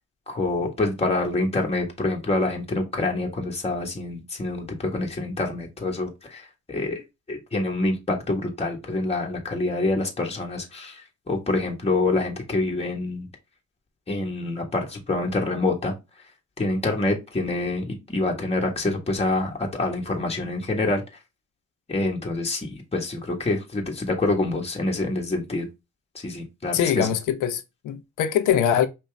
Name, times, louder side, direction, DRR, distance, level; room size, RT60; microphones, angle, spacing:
voice 1, 0.3-7.0 7.3-13.3 14.1-15.9 16.6-21.0 21.9-25.7 26.1-27.1, left 2 dB, 20° left, 1.6 m, -26 dB
voice 2, 26.7-28.9, left 9 dB, 90° left, 0.9 m, -23 dB
5.3 x 2.9 x 3.4 m
cardioid pair, 90°, 30 cm